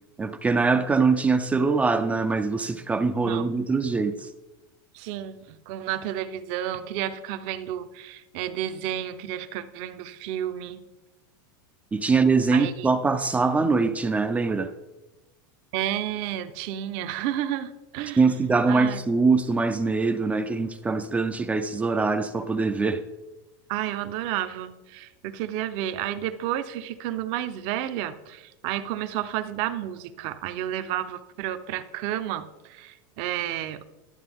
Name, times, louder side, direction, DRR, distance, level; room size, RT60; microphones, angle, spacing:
voice 1, 0.2-4.3 11.9-14.7 18.2-23.0, right 4 dB, 10° right, 0.4 m, -23 dB
voice 2, 3.2-3.5 4.9-10.8 12.5-12.9 15.7-18.4 18.7-19.0 23.7-33.8, right 12 dB, 55° right, 0.7 m, -31 dB
11.5 x 7.0 x 3.5 m
supercardioid pair, 135°, 11 cm